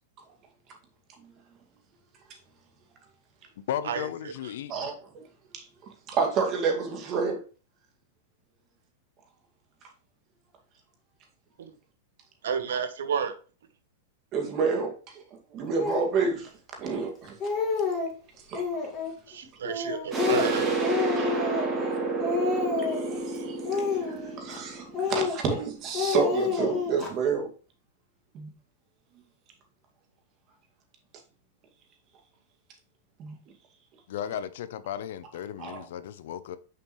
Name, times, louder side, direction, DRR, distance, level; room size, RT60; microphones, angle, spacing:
voice 1, 3.7-4.9 34.1-36.6, left 10 dB, 70° left, 0.6 m, -35 dB
voice 2, 4.7-5.3 5.5-5.7 6.1-7.4 14.3-15.2 15.5-16.5 16.8-17.3 18.5-18.6 21.1-21.4 22.8-27.5 28.3-28.5 33.2-33.3 35.6-35.8, right 5 dB, 35° right, 2.1 m, -29 dB
voice 3, 12.4-13.3 19.3-20.7, right 7 dB, 85° right, 1.1 m, -30 dB
Speech, 15.8-16.1 16.8-16.9 17.2-18.1 18.5-19.1 19.6-21.9 22.2-23.1 23.6-24.6 24.9-25.6 25.9-27.1, left 5 dB, 25° left, 2.9 m, -29 dB
sound 1, 20.1-25.6, right 3 dB, 20° right, 2.8 m, -30 dB
6.6 x 5.4 x 3.2 m
hypercardioid pair, 135°, 0 cm